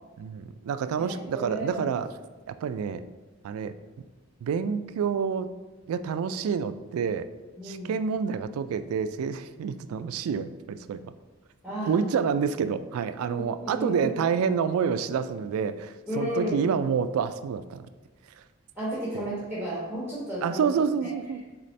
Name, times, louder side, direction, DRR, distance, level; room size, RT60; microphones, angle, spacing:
voice 1, 0.2-2.1 2.5-3.0 3.4-3.7 4.4-5.5 5.9-7.3 7.6-11.1 11.9-17.9 19.1-19.3 20.4-21.5, right 6 dB, 90° right, 15 dB, 0.3 m, -28 dB
voice 2, 1.0-1.8 7.6-7.9 11.6-12.1 13.3-14.1 16.1-16.6 18.8-20.6, equal, ahead, -9 dB, 1.3 m, -33 dB
4.1 x 4.1 x 3.2 m, 1.2 s
head